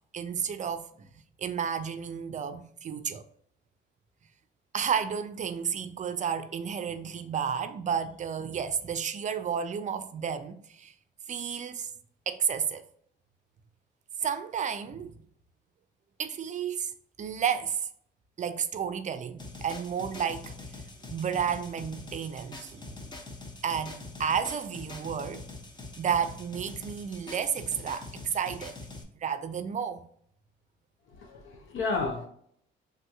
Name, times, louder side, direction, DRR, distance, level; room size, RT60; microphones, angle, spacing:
voice 1, 0.1-1.1 1.4-3.2 4.7-10.9 11.3-11.9 12.3-12.8 14.2-15.1 16.2-17.9 18.4-20.5 21.1-23.1 23.6-25.4 26.0-28.8 29.2-30.1, right 7 dB, 40° right, 0.4 m, -32 dB
sound 1, 19.4-29.0, left 3 dB, 20° left, 0.7 m, -44 dB
voice 2, 31.1-32.3, left 3 dB, 85° left, 0.6 m, -32 dB
3.4 x 2.8 x 2.3 m
cardioid pair, 90°, 20 cm